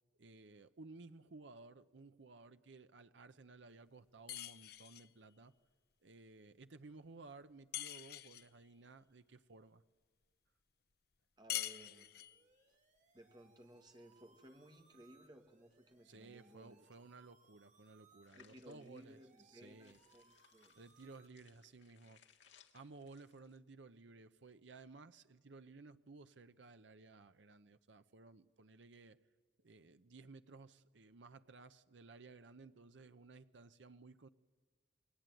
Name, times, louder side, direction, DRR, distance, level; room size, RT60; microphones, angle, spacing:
voice 1, 0.2-5.5 6.0-9.8 16.0-20.0 20.8-22.2 22.7-29.2 29.6-34.3, right 3 dB, 85° right, 11 dB, 0.8 m, -57 dB
sound 1, 4.3-5.1 7.7-8.5 11.5-12.4, left 13 dB, 55° left, 0.7 m, -44 dB
voice 2, 11.4-12.2 12.7-12.8 13.1-16.8 18.3-20.8, right 1 dB, 25° right, 5 dB, 2.1 m, -60 dB
sound 2, 12.3-21.3, right 4 dB, 40° right, 2.7 m, -71 dB
sound 3, 18.3-23.6, left 8 dB, 80° left, 2.0 m, -68 dB
29.0 x 21.0 x 9.2 m, 1.5 s
head